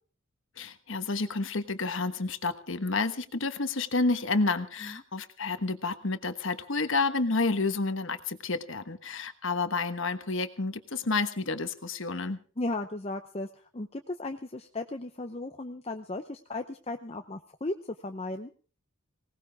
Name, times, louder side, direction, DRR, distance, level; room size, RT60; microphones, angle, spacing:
voice 1, 0.6-12.4, left 3 dB, 60° left, 10 dB, 1.3 m, -30 dB
voice 2, 12.6-18.5, left 2 dB, 30° left, 6 dB, 0.7 m, -36 dB
19.5 x 18.5 x 3.5 m, 0.39 s
head